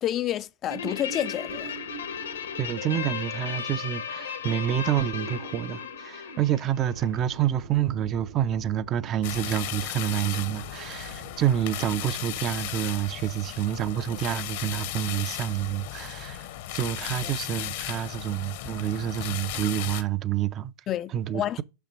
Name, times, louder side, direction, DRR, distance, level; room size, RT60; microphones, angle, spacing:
voice 1, 0.0-1.7 17.2-17.3 20.9-21.6, left 12 dB, 35° left, 0.4 m, -29 dB
Guitar, 0.7-7.4, left 6 dB, 80° left, 1.1 m, -35 dB
voice 2, 2.6-16.5 16.7-20.7 21.1-21.6, right 11 dB, 35° right, 0.5 m, -28 dB
sound 1, 6.9-12.0, right 5 dB, 80° right, 1.7 m, -47 dB
sound 2, 9.2-20.0, left 13 dB, 60° left, 0.8 m, -36 dB
6.7 x 5.8 x 3.3 m
hypercardioid pair, 100°, 0 cm